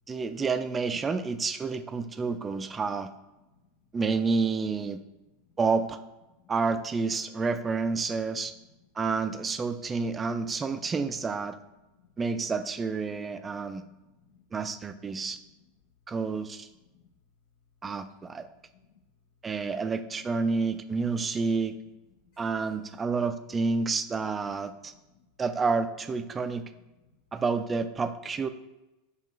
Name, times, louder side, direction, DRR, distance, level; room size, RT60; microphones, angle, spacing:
voice 1, 0.1-3.1 3.9-5.0 5.6-6.0 6.5-8.5 9.0-11.6 12.2-13.8 14.5-15.4 16.1-16.7 17.8-18.5 19.4-21.8 22.4-24.9 25.4-26.6 27.3-28.5, right 4 dB, 20° right, 10 dB, 0.3 m, -29 dB
voice 2, 13.6-14.5 15.1-15.7 16.7-17.1 18.4-19.0 21.2-21.4 22.3-22.7 25.1-25.3 26.3-26.4, left 6 dB, 70° left, 0 dB, 0.7 m, -63 dB
7.0 x 2.4 x 3.1 m, 1.0 s
hypercardioid pair, 110°, 0 cm